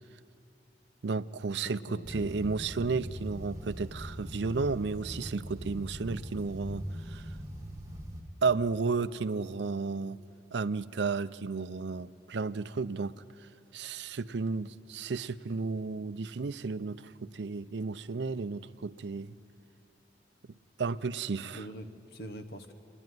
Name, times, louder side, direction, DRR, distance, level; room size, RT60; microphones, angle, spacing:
voice 1, 1.0-7.3 8.4-10.2 10.5-13.2 13.7-19.4 20.8-21.6, right 4 dB, 75° right, 15 dB, 0.5 m, -33 dB
voice 2, 1.6-2.4 21.5-22.7, equal, 55° left, 8 dB, 1.0 m, -44 dB
sound 1, 2.0-8.2, equal, 15° right, 1.9 m, -41 dB
27.5 x 11.0 x 9.3 m, 2.6 s
head